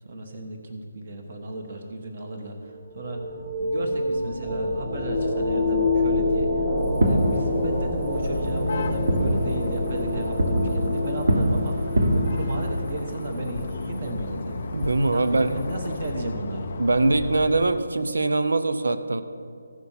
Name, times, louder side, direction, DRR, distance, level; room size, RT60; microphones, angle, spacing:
voice 1, 0.0-3.2 3.6-6.5 7.0-14.7 15.0-16.7, right 2 dB, 30° right, 3 dB, 1.1 m, -34 dB
sound 1, 2.7-13.2, left 2 dB, ahead, 1.2 m, -27 dB
Fireworks, 6.8-16.1, right 1 dB, 50° right, 1.4 m, -27 dB
sound 2, 8.1-17.8, left 5 dB, 30° left, 0.3 m, -35 dB
voice 2, 14.7-15.6 16.8-19.2, right 2 dB, 90° right, 10 dB, 0.6 m, -22 dB
14.0 x 6.0 x 5.6 m, 2.3 s
hypercardioid pair, 180°, 0 cm